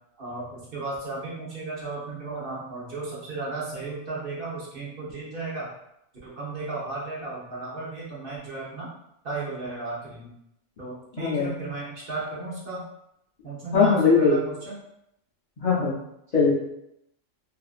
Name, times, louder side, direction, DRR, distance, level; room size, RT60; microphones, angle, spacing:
voice 1, 0.2-5.7 6.2-8.9 9.2-10.3 10.8-12.8 13.4-14.8, right 3 dB, 50° right, -6 dB, 0.9 m, -34 dB
voice 2, 11.2-11.5 13.7-14.4 15.6-16.0 16.3-16.5, left 5 dB, 65° left, -7 dB, 0.4 m, -20 dB
2.6 x 2.4 x 2.3 m, 0.80 s
omnidirectional pair, 1.3 m